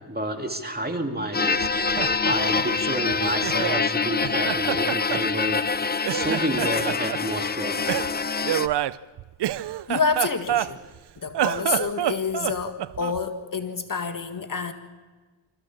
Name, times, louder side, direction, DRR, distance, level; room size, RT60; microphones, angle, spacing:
voice 1, 0.1-1.7 2.2-5.6 6.1-7.8, right 1 dB, 20° right, 5 dB, 2.4 m, -29 dB
sound 1, 1.3-8.7, left 5 dB, 20° left, 0.6 m, -25 dB
Laughter, 1.6-3.9 4.2-5.8 6.0-7.2 7.9-11.0 11.3-13.2, right 12 dB, 65° right, 0.6 m, -28 dB
voice 2, 9.9-10.8 11.2-14.7, left 5 dB, 45° left, 8 dB, 1.7 m, -28 dB
25.5 x 14.5 x 7.2 m, 1.3 s
cardioid pair, 60°, 44 cm